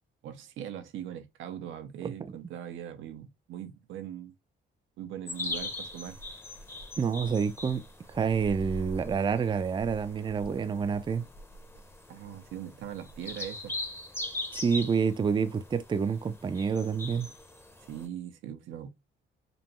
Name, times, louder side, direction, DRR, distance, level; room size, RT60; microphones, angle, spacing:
voice 1, 0.2-4.3 5.0-6.2 12.1-13.7 17.9-18.9, right 10 dB, 80° right, 0.7 m, -40 dB
sound 1, 5.3-18.1, left 2 dB, 10° left, 0.7 m, -41 dB
voice 2, 7.0-7.8 8.1-11.3 14.5-17.3, right 6 dB, 25° right, 0.4 m, -28 dB
5.2 x 2.2 x 3.0 m
cardioid pair, 90°, 20 cm